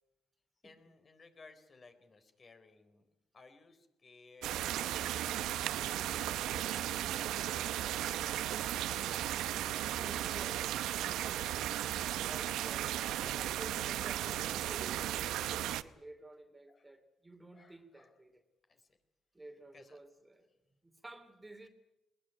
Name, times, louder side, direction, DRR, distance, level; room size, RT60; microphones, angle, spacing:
voice 1, 0.6-3.1 3.3-7.8 8.3-9.2 12.0-12.4 16.7-16.9 17.5-18.1 18.7-18.9 19.7-20.0 21.6-21.7, left 3 dB, 40° left, 8 dB, 4.0 m, -61 dB
sound 1, 4.4-15.8, right 12 dB, 85° right, 0.8 m, -35 dB
voice 2, 10.0-11.5 12.2-18.4 19.3-20.5 20.8-21.7, right 2 dB, 15° right, 7 dB, 2.7 m, -53 dB
21.0 x 20.5 x 9.7 m, 0.95 s
cardioid pair, 90°, 0 cm